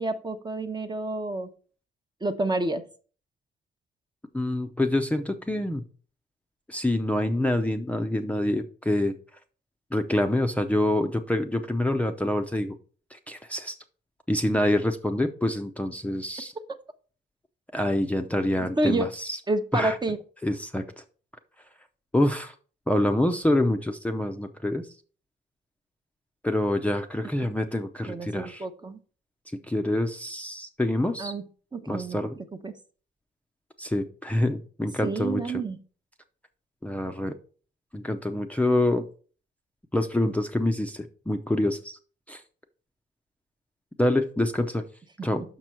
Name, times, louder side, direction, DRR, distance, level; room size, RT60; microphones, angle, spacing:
voice 1, 0.0-1.5 2.2-2.8 18.6-19.1 19.5-20.2 28.0-29.0 31.2-31.4 31.7-32.2 32.6-32.8 35.0-35.8 45.2-45.3, right 2 dB, 20° right, 8 dB, 0.9 m, -29 dB
voice 2, 4.3-5.8 6.7-9.2 9.9-12.7 13.1-13.8 14.3-16.5 17.7-19.4 19.7-20.0 20.4-21.0 22.1-22.5 22.9-24.9 26.4-28.6 29.7-31.3 31.9-32.4 33.8-35.6 36.8-37.4 37.9-39.0 39.9-42.0 42.3-42.4 44.0-44.8 45.2-45.4, left 1 dB, 5° left, 5 dB, 0.6 m, -26 dB
6.0 x 6.0 x 4.4 m, 0.40 s
cardioid pair, 90°, 20 cm